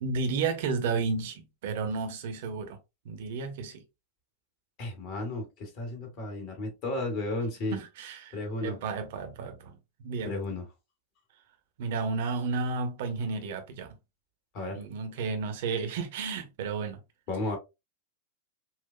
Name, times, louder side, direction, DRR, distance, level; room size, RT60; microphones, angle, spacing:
voice 1, 0.0-2.8 3.0-3.8 7.7-8.4 8.6-10.3 11.8-13.9 14.7-17.0, right 4 dB, 55° right, 0.9 m, -32 dB
voice 2, 4.8-7.8 8.3-8.8 10.2-10.6 14.5-14.8 17.3-17.6, left 2 dB, 40° left, 1.8 m, -33 dB
5.7 x 2.4 x 2.2 m
figure-of-eight pair, 90°, 0 cm